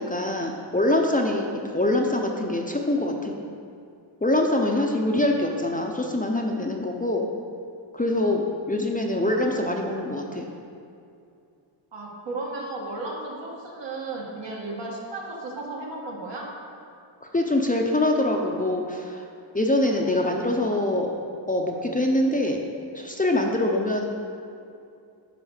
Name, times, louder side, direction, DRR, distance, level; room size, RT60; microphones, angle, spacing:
voice 1, 0.0-3.3 4.2-7.3 7.9-10.5 17.2-19.2 19.5-21.1 21.5-22.6 22.9-24.0, left 1 dB, 20° left, 1 dB, 0.6 m, -24 dB
voice 2, 11.9-16.5, right 2 dB, 65° right, -3 dB, 1.8 m, -34 dB
10.0 x 3.8 x 6.5 m, 2.5 s
wide cardioid pair, 110°, 46 cm